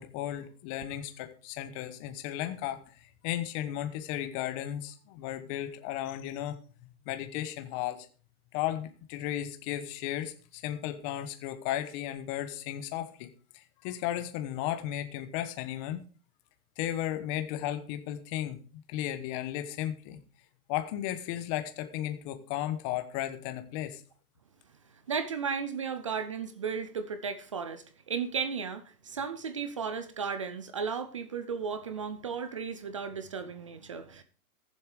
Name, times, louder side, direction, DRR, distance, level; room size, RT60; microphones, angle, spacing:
voice 1, 0.0-2.8 3.2-6.6 7.0-8.1 8.5-13.3 13.5-16.0 16.8-20.2 20.7-24.0, left 12 dB, 25° left, 9 dB, 1.1 m, -35 dB
voice 2, 25.1-34.2, right 6 dB, 25° right, 10 dB, 0.4 m, -35 dB
15.0 x 7.4 x 4.8 m, 0.37 s
hypercardioid pair, 155°, 44 cm